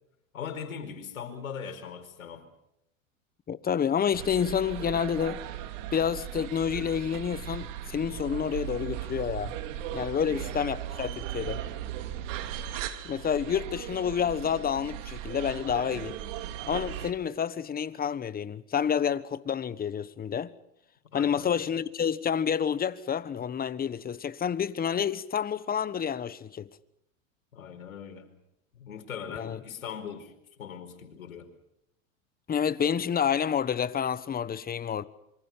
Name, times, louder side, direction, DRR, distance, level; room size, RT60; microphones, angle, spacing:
voice 1, 0.3-2.5 10.1-10.7 13.4-13.6 21.1-21.6 27.5-28.3 28.7-30.3 30.6-31.5, left 7 dB, 85° left, 4.8 m, -40 dB
voice 2, 3.5-5.4 5.9-9.5 9.9-11.6 13.0-16.2 16.7-20.5 21.1-26.7 29.3-29.6 32.5-35.0, left 8 dB, 20° left, 1.2 m, -29 dB
sound 1, 4.1-17.1, right 11 dB, 65° right, 2.8 m, -37 dB
27.0 x 24.5 x 5.8 m
hypercardioid pair, 100°, 40 cm